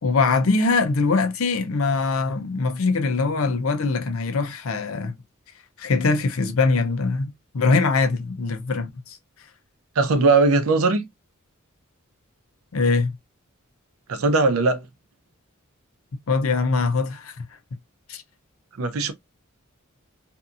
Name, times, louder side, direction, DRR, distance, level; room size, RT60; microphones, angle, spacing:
voice 1, 0.0-5.2 5.8-9.2 12.7-13.1 16.3-17.5 18.1-18.2, left 3 dB, 70° left, 0.6 m, -22 dB
voice 2, 10.0-11.0 14.1-14.8 18.8-19.1, right 3 dB, 75° right, 0.6 m, -19 dB
2.7 x 2.5 x 2.4 m
head